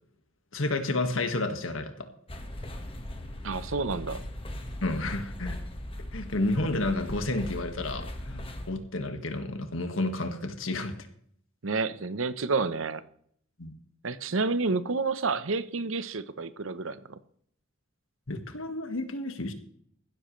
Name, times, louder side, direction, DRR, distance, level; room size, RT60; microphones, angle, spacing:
voice 1, 0.5-2.1 4.8-5.6 6.1-10.9 13.6-13.7 18.3-19.5, left 2 dB, 75° left, 1.8 m, -31 dB
bangalore zug langsam, 2.3-8.7, left 1 dB, 30° left, 1.5 m, -39 dB
voice 2, 3.4-4.2 11.6-13.0 14.0-17.2, right 4 dB, 75° right, 0.9 m, -29 dB
15.5 x 13.0 x 3.3 m
head